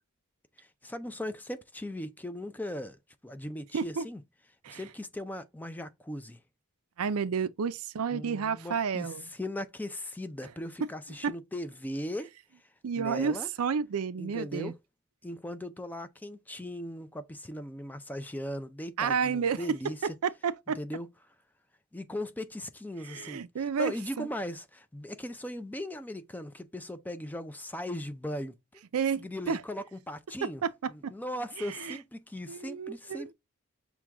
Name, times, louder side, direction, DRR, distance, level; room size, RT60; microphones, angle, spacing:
voice 1, 0.6-3.0 3.2-4.2 4.7-6.4 8.1-12.3 13.0-13.5 14.2-14.8 15.2-20.1 20.7-21.1 21.9-28.8 29.1-30.6 30.9-33.3, left 1 dB, 10° left, 0.4 m, -38 dB
voice 2, 3.7-4.1 4.6-4.8 7.0-9.2 11.2-11.3 12.8-14.7 19.0-19.7 20.2-20.8 23.1-24.3 28.9-29.6 30.4-31.1 31.6-32.0 32.5-33.3, right 6 dB, 80° right, 0.5 m, -31 dB
6.0 x 2.3 x 3.4 m
head